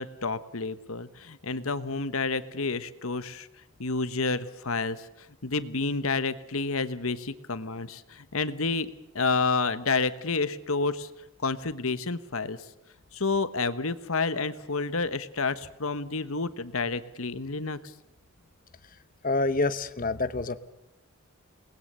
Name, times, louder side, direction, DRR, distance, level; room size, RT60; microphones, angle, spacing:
voice 1, 0.0-3.5 3.8-5.1 5.4-8.9 9.1-11.1 11.4-12.6 13.1-17.8, left 4 dB, 75° left, 13 dB, 1.3 m, -29 dB
voice 2, 19.2-20.6, left 3 dB, 40° left, 12 dB, 1.1 m, -27 dB
28.5 x 20.0 x 6.8 m, 0.86 s
head